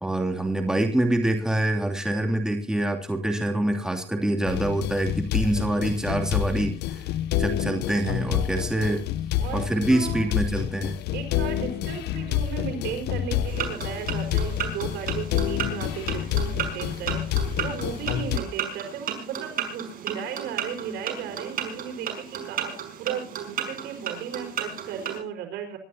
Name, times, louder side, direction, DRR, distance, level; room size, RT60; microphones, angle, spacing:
voice 1, 0.0-7.0 7.4-9.0 9.5-11.0, right 1 dB, 5° right, 3 dB, 2.9 m, -25 dB
sound 1, 4.5-18.4, left 11 dB, 75° left, 0.8 m, -28 dB
voice 2, 9.4-10.4 11.1-25.8, right 8 dB, 80° right, 5 dB, 5.0 m, -35 dB
sound 2, 13.5-25.2, right 8 dB, 60° right, 5.3 m, -34 dB
25.5 x 12.5 x 2.8 m, 0.41 s
cardioid pair, 110°, 17 cm